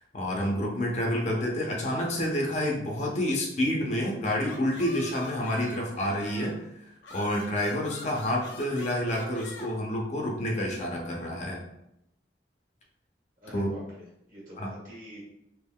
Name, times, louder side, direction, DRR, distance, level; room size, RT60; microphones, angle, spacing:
voice 1, 0.1-6.5 7.1-11.6 13.5-13.7 14.6-14.7, left 1 dB, 40° left, -1 dB, 0.5 m, -28 dB
sound 1, 3.8-6.6 7.0-9.7, left 3 dB, 85° left, 0.5 m, -45 dB
voice 2, 13.4-15.2, equal, 50° right, -6 dB, 1.4 m, -46 dB
3.5 x 2.4 x 2.2 m, 0.81 s
head